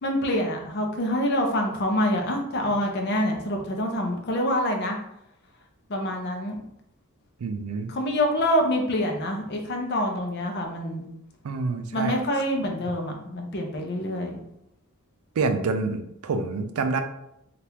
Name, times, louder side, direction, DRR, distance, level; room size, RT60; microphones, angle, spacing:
voice 1, 0.0-5.0 5.9-6.6 7.9-11.0 11.9-14.4, equal, 50° left, 2 dB, 0.6 m, -26 dB
voice 2, 7.4-7.9 11.4-12.2 15.4-17.0, right 4 dB, 80° right, 7 dB, 0.4 m, -27 dB
3.4 x 2.5 x 2.8 m, 0.79 s
head